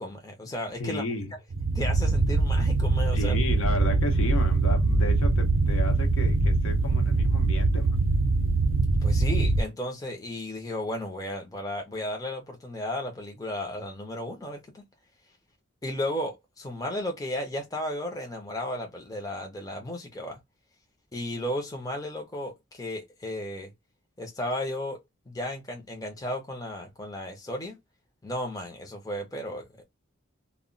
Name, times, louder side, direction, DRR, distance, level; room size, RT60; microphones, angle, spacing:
voice 1, 0.0-1.0 1.7-3.4 9.0-14.9 15.8-20.4 21.1-23.7 24.2-25.0 25.3-27.8 28.2-29.8, left 1 dB, 15° left, 0.6 m, -34 dB
voice 2, 0.8-1.3 3.1-8.0, left 1 dB, 75° left, 0.8 m, -33 dB
sound 1, 1.5-9.6, right 3 dB, 70° right, 0.5 m, -23 dB
2.2 x 2.1 x 3.7 m
head